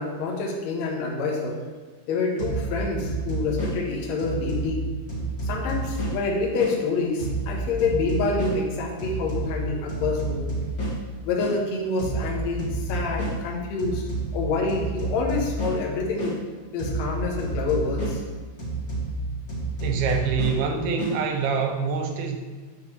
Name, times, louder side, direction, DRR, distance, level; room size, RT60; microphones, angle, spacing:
voice 1, 0.0-1.6 2.1-4.8 5.4-10.5 11.2-14.0 14.3-16.4 16.7-18.2, left 3 dB, 80° left, -1 dB, 1.6 m, -27 dB
sound 1, 2.4-6.8 7.2-11.6 12.0-16.4 16.8-21.2, right 2 dB, 40° left, 2.2 m, -30 dB
voice 2, 19.8-22.4, right 5 dB, 80° right, 3 dB, 2.4 m, -25 dB
7.7 x 6.0 x 3.0 m, 1.4 s
omnidirectional pair, 4.6 m